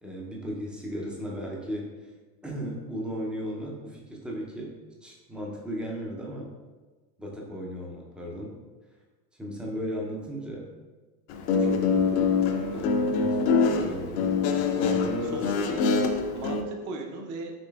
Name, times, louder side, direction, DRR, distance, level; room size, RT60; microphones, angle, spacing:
voice 1, 0.0-1.9 2.4-4.7 5.0-6.5 7.2-8.5 9.4-10.7 11.5-12.4 12.7-14.4 14.8-15.5, equal, ahead, -2 dB, 0.4 m, -36 dB
Guitar, 11.3-16.6, left 5 dB, 60° left, 0.6 m, -24 dB
voice 2, 14.6-15.8 16.3-17.5, right 3 dB, 40° right, 3 dB, 0.7 m, -39 dB
5.2 x 3.1 x 2.3 m, 1.3 s
hypercardioid pair, 100°, 47 cm